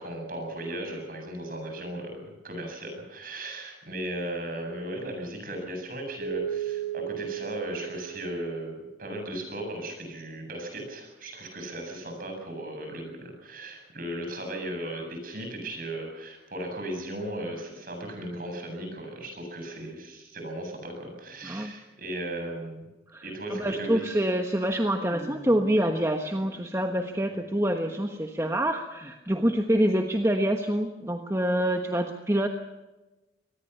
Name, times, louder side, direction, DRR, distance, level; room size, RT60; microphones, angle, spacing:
voice 1, 0.0-22.8 23.2-24.3, right 1 dB, 50° right, 3 dB, 7.9 m, -36 dB
Keyboard (musical), 6.2-9.2, right 10 dB, 85° right, 6.6 m, -35 dB
voice 2, 23.5-32.5, right 1 dB, 15° right, 4 dB, 1.3 m, -26 dB
24.5 x 19.5 x 7.0 m, 1.1 s
head